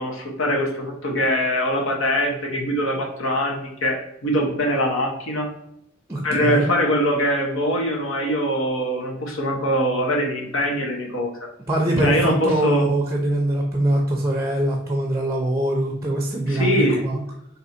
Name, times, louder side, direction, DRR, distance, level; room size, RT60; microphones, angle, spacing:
voice 1, 0.0-5.5 6.2-11.3 12.0-12.8 16.5-17.0, equal, 75° left, 1 dB, 1.1 m, -23 dB
voice 2, 6.1-6.7 11.7-17.2, right 1 dB, 15° right, 1 dB, 0.5 m, -23 dB
3.9 x 2.8 x 4.2 m, 0.77 s
head